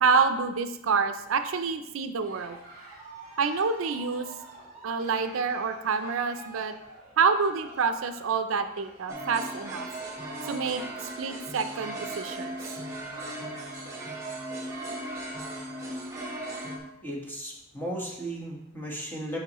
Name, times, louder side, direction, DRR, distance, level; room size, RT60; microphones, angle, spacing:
voice 1, 0.0-2.6 3.4-4.3 4.8-6.7 7.2-9.9 10.5-10.8 11.2-12.6, right 5 dB, 70° right, 9 dB, 0.4 m, -27 dB
Cheering, 2.1-13.4 13.7-14.1 14.6-14.7 14.8-15.7, right 2 dB, 35° right, 2.4 m, -49 dB
sound 1, 9.1-16.8, right 1 dB, 15° right, 1.2 m, -37 dB
voice 2, 17.0-19.4, right 1 dB, 10° left, -2 dB, 1.3 m, -35 dB
9.1 x 5.4 x 3.0 m, 0.90 s
head